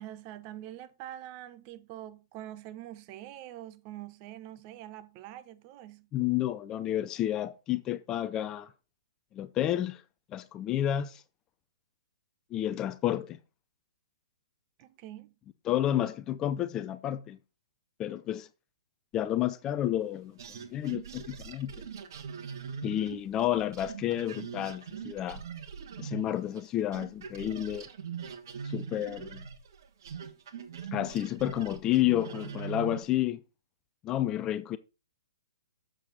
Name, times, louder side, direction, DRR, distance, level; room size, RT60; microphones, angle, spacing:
voice 1, 0.0-6.1 14.8-15.3, right 13 dB, 35° right, 0.8 m, -45 dB
voice 2, 6.1-8.7 9.3-10.0 10.3-11.2 12.5-13.4 15.7-17.4 18.0-18.5 19.1-20.3 20.7-21.7 22.8-25.4 26.0-27.9 28.6-29.4 30.9-33.4 34.0-34.8, left 12 dB, 25° left, 0.5 m, -30 dB
sound 1, 20.4-26.7 26.9-33.1, right 7 dB, 60° right, 1.4 m, -41 dB
7.6 x 6.5 x 4.0 m
hypercardioid pair, 125°, 2 cm